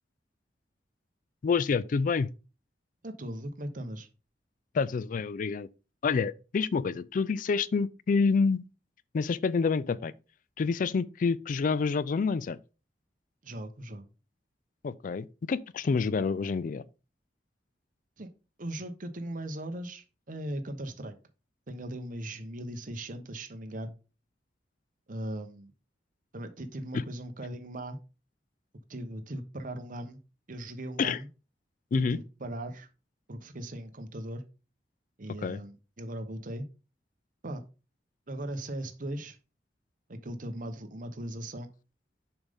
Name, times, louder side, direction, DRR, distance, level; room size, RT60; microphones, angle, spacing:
voice 1, 1.4-2.3 4.7-5.7 6.0-8.6 9.1-10.1 10.6-12.6 14.8-16.8 26.9-27.0 31.0-31.2 31.9-32.2 35.4-35.6, left 5 dB, 50° left, 0.3 m, -28 dB
voice 2, 3.0-4.1 13.4-14.1 18.2-18.3 18.6-21.1 21.7-23.9 25.1-25.7 26.3-28.0 28.9-30.2 30.5-31.3 32.0-32.9 33.3-34.4 35.2-36.7 37.4-37.6 38.3-39.4 40.1-41.7, right 1 dB, 50° right, 1.0 m, -38 dB
7.1 x 5.2 x 3.6 m
head